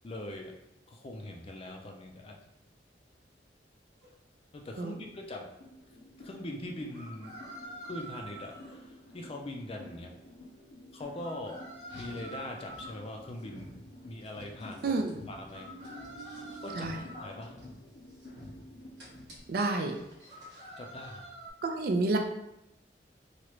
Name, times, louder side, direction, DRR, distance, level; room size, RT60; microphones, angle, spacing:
voice 1, 0.0-0.5 0.9-2.4 4.5-5.5 6.2-7.3 7.8-10.1 10.9-11.6 11.9-13.7 14.0-15.0 15.3-15.7 16.5-17.6 20.8-21.3, left 1 dB, 35° left, 2 dB, 0.4 m, -42 dB
sound 1, 4.0-4.1 6.9-8.8 11.2-13.0 15.5-17.3 20.3-21.5, right 1 dB, 40° right, 1.0 m, -46 dB
sound 2, 5.6-19.4, left 1 dB, 75° left, 0.6 m, -52 dB
Car, 11.8-20.8, right 1 dB, 85° right, 1.2 m, -51 dB
voice 2, 14.8-15.2 16.8-17.0 19.5-20.0 21.6-22.2, right 3 dB, 55° right, 4 dB, 0.4 m, -29 dB
3.0 x 2.4 x 3.1 m, 0.84 s
head